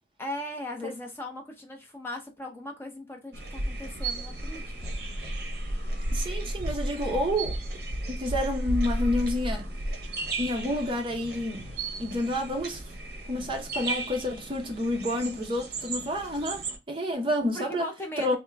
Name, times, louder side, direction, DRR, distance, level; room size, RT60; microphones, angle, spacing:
voice 1, 0.2-5.0 17.5-18.4, left 1 dB, 15° left, 0.6 m, -38 dB
sound 1, 3.3-16.8, right 1 dB, 60° right, 0.8 m, -33 dB
voice 2, 6.1-7.6 8.1-9.7 10.4-11.7 12.0-12.8 13.3-17.9 18.2-18.4, left 1 dB, 30° right, 0.6 m, -29 dB
3.5 x 2.1 x 3.3 m
head